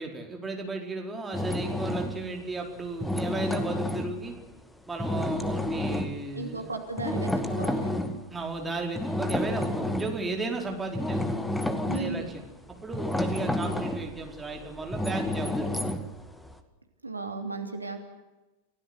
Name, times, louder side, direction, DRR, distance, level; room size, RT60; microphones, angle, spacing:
voice 1, 0.0-4.3 4.9-6.7 8.3-11.2 11.9-12.4 12.8-15.9, right 3 dB, 10° right, 2 dB, 4.8 m, -34 dB
sound 1, 1.3-2.4 2.9-4.5 5.0-6.2 7.0-8.2 8.9-10.3 10.7-16.5, left 1 dB, 5° left, 2.2 m, -30 dB
voice 2, 6.3-7.9 11.9-12.3 17.0-18.0, right 3 dB, 80° right, 5 dB, 3.0 m, -35 dB
30.0 x 17.5 x 8.2 m, 1.1 s
figure-of-eight pair, 90°, 0 cm